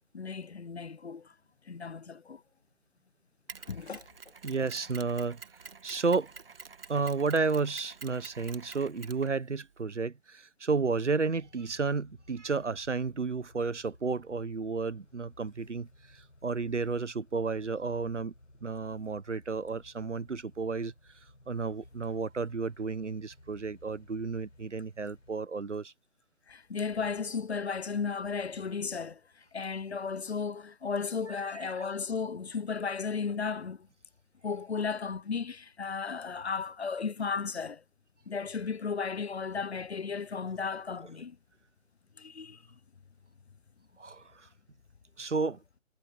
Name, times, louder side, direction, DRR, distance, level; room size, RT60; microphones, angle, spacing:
voice 1, 0.1-1.3 1.7-2.4 3.7-4.0 26.5-33.9 34.4-37.8 38.3-41.4 42.2-42.6, left 5 dB, 60° left, 0.9 m, -35 dB
Mechanisms, 3.5-9.8, right 5 dB, 50° right, 1.7 m, -49 dB
voice 2, 4.4-5.4 5.8-6.3 6.9-18.3 18.6-20.9 21.5-25.9 31.5-31.9 44.0-44.5 45.2-45.6, right 4 dB, 70° right, 1.3 m, -32 dB
sound 1, 10.7-25.3, left 1 dB, 80° left, 4.7 m, -58 dB
figure-of-eight pair, 145°, 37 cm